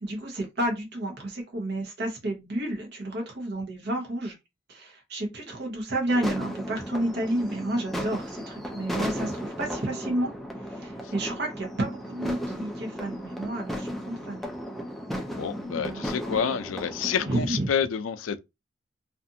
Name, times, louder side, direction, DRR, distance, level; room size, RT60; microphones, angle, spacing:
voice 1, 0.0-4.3 4.7-10.3 10.7-14.4 15.7-16.0 17.3-17.7, right 1 dB, 60° right, 0.9 m, -31 dB
sound 1, 6.1-17.4, equal, ahead, 0.4 m, -35 dB
voice 2, 15.3-18.4, left 7 dB, 90° left, 0.4 m, -28 dB
2.5 x 2.5 x 2.6 m
head